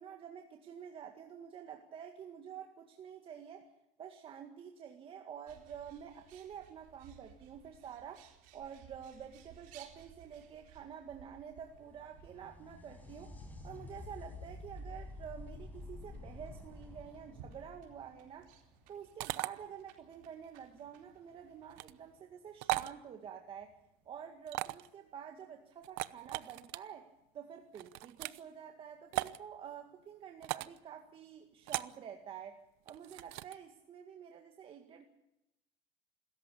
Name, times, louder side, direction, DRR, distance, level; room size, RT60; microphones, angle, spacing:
voice 1, 0.0-3.7 4.0-13.3 13.6-18.5 18.9-23.7 24.1-27.1 27.3-32.6 32.9-35.0, right 8 dB, 40° right, 4 dB, 2.0 m, -49 dB
Bird, 5.5-22.2, right 8 dB, 70° right, 4.0 m, -61 dB
sound 1, 11.5-19.1 22.5-22.6 23.6-23.7, left 2 dB, 10° left, 5.5 m, -50 dB
sound 2, 19.2-19.5 21.7-21.9 22.6-22.9 24.5-24.9 25.8-26.8 27.7-28.4 29.1-29.4 30.4-30.8 31.7-32.0 32.9-33.5, right 20 dB, 85° right, 0.8 m, -37 dB
26.5 x 14.0 x 8.5 m, 0.88 s
cardioid pair, 140°, 15 cm